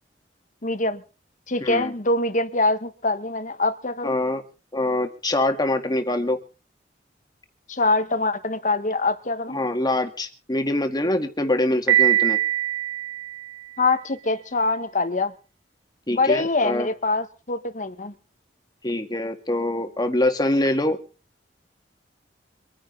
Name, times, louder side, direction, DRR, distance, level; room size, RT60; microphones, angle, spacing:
voice 1, 0.6-1.0 1.5-4.1 7.7-9.6 13.8-15.3 16.1-18.1, left 2 dB, 45° left, 1.3 m, -24 dB
voice 2, 1.6-1.9 4.0-4.4 4.7-6.4 9.5-12.4 16.1-16.9 18.8-21.0, left 1 dB, 25° left, 1.9 m, -24 dB
Piano, 11.9-13.8, right 12 dB, 85° right, 3.1 m, -22 dB
25.5 x 10.0 x 3.9 m
head